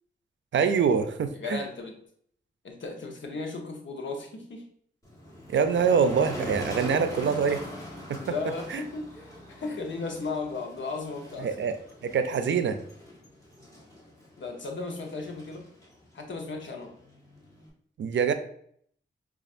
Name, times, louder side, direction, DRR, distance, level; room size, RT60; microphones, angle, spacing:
voice 1, 0.5-1.6 5.5-7.6 8.1-8.4 8.7-8.8 11.4-11.7 12.0-12.8 18.0-18.3, right 6 dB, 75° right, 9 dB, 0.4 m, -25 dB
voice 2, 1.4-2.0 2.6-4.6 8.2-11.5 14.4-15.6 16.1-16.9, left 3 dB, 75° left, 2 dB, 0.8 m, -35 dB
Motor vehicle (road), 5.0-17.7, left 1 dB, 15° left, 1.3 m, -43 dB
5.2 x 2.4 x 2.4 m, 0.64 s
cardioid pair, 55°, 20 cm